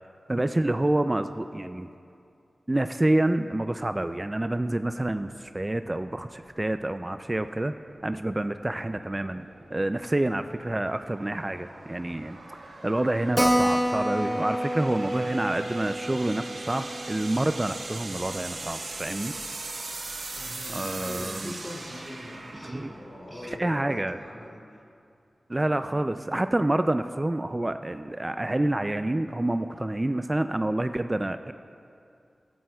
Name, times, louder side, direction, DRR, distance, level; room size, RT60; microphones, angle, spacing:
voice 1, 0.3-1.9 2.7-7.7 8.0-19.3 20.7-21.5 22.6-22.9 23.6-24.2 25.5-31.5, right 1 dB, 25° right, 9 dB, 0.3 m, -28 dB
sound 1, 5.4-24.3, right 2 dB, 70° right, 1.1 m, -41 dB
voice 2, 10.5-10.8 20.3-24.8 25.6-26.0, left 1 dB, 40° left, -2 dB, 2.8 m, -43 dB
Keyboard (musical), 13.4-18.4 18.7-18.8 19.1-19.2 19.4-19.5 20.1-20.4, equal, 5° right, 1.1 m, -29 dB
14.0 x 14.0 x 2.3 m, 2.5 s
cardioid pair, 45°, 0 cm